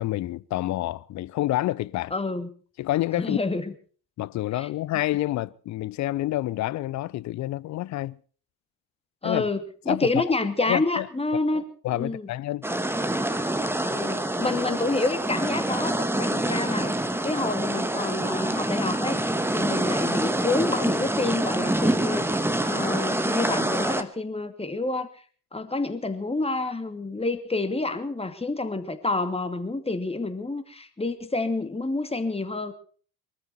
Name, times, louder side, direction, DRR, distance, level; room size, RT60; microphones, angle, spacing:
voice 1, 0.0-2.1 2.8-3.4 4.2-8.2 9.2-9.5 9.9-10.2 10.6-11.1 11.8-12.7, left 15 dB, 35° left, 0.7 m, -28 dB
voice 2, 2.1-2.5 3.2-3.6 4.6-4.7 9.2-9.6 9.9-11.6 11.9-12.3 13.8-17.0 17.2-25.1 25.5-32.7, left 3 dB, 10° left, 2.6 m, -28 dB
sound 1, 12.6-24.0, right 1 dB, 5° right, 1.6 m, -26 dB
23.5 x 14.0 x 4.2 m
figure-of-eight pair, 60°, 48 cm